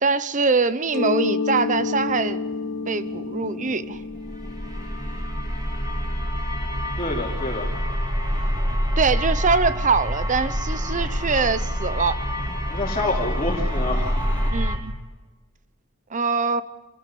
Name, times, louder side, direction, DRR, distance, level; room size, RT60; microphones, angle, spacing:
voice 1, 0.0-2.4 2.9-4.0 9.0-12.2 14.5-14.9 16.1-16.6, right 4 dB, 35° right, 15 dB, 0.9 m, -23 dB
Mallet percussion, 0.9-6.5, left 4 dB, 65° left, 1.6 m, -30 dB
sound 1, 1.5-14.5, equal, 5° left, 3.2 m, -44 dB
sound 2, 4.1-14.8, equal, 20° right, 3.2 m, -26 dB
voice 2, 7.0-7.7 12.7-14.2, left 2 dB, 25° left, -3 dB, 2.9 m, -27 dB
26.5 x 16.5 x 7.0 m, 1.3 s
head